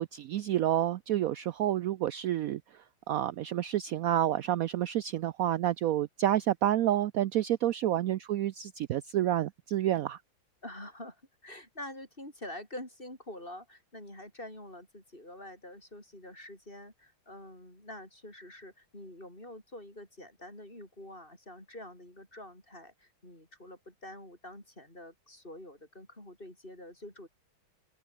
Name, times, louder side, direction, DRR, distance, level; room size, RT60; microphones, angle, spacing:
voice 1, 0.0-2.6 3.1-10.2, right 12 dB, 75° right, 0.8 m, -29 dB
voice 2, 10.6-27.3, left 1 dB, 25° left, 8.0 m, -46 dB
omnidirectional pair, 2.1 m